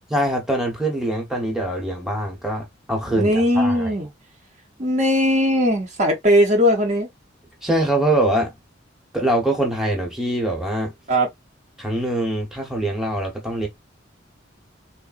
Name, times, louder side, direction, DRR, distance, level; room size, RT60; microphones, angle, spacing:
voice 1, 0.1-3.9 7.6-8.5 9.1-10.9 11.8-13.7, right 1 dB, 5° right, 0.9 m, -23 dB
voice 2, 3.2-4.1 4.8-7.1 11.1-11.3, equal, 35° right, 0.7 m, -19 dB
3.7 x 2.1 x 2.4 m
head